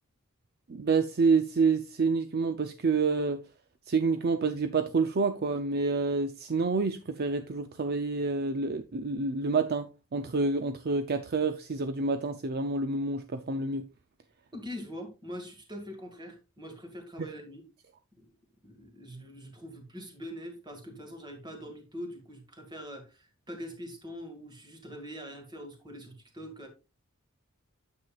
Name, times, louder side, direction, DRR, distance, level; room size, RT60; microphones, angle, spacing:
voice 1, 0.7-3.4 3.9-13.9, right 4 dB, 45° right, 0.5 m, -28 dB
voice 2, 14.5-17.6 18.2-18.3 18.6-26.7, equal, 20° right, 1.9 m, -43 dB
9.4 x 7.5 x 2.4 m
head